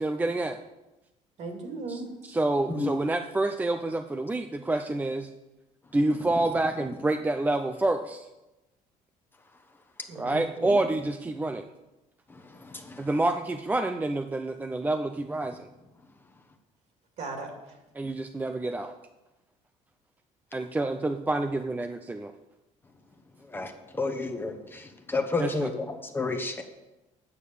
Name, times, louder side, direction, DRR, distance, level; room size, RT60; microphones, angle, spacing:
voice 1, 0.0-0.6 1.9-2.0 2.3-5.3 5.9-8.3 10.2-11.7 13.0-15.7 18.0-18.9 20.5-22.3 25.4-25.7, right 2 dB, 10° right, 7 dB, 0.5 m, -28 dB
voice 2, 1.4-2.1 10.1-10.8 17.2-17.8, right 3 dB, 55° right, 3 dB, 2.6 m, -37 dB
voice 3, 24.0-24.5 25.1-25.8 26.1-26.6, left 3 dB, 15° left, 6 dB, 1.0 m, -29 dB
9.2 x 6.6 x 6.9 m, 1.0 s
cardioid pair, 120°, 13 cm